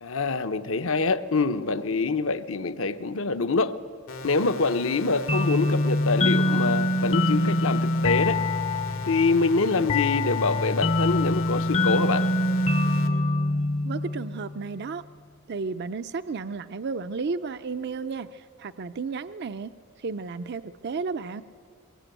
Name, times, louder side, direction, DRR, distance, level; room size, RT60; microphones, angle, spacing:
voice 1, 0.0-3.7 4.2-8.4 9.1-12.3, left 3 dB, 70° left, 1.0 m, -25 dB
sound 1, 4.1-13.1, left 3 dB, 90° left, 2.4 m, -39 dB
sound 2, 5.3-14.6, left 1 dB, 30° left, 0.7 m, -25 dB
voice 2, 13.8-15.0 15.5-19.7 20.0-21.4, right 4 dB, 55° right, 0.5 m, -33 dB
23.0 x 22.0 x 9.1 m
head